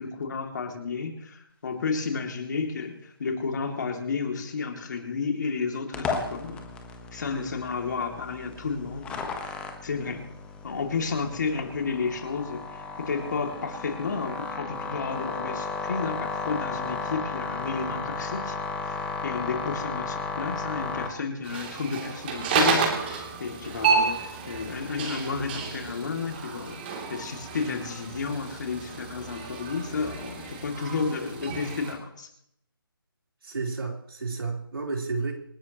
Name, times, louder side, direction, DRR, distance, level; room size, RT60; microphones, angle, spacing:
voice 1, 0.0-6.6 7.1-9.5 9.8-10.3 10.6-18.6 18.8-32.3, left 5 dB, 50° left, 4 dB, 2.7 m, -32 dB
sound 1, 5.9-21.1, left 4 dB, 10° left, 1.2 m, -34 dB
sound 2, 21.4-31.9, right 5 dB, 25° right, 3.1 m, -30 dB
voice 2, 33.4-35.3, right 3 dB, 75° right, 0 dB, 4.0 m, -31 dB
27.5 x 11.5 x 3.1 m, 0.74 s
figure-of-eight pair, 160°, 12 cm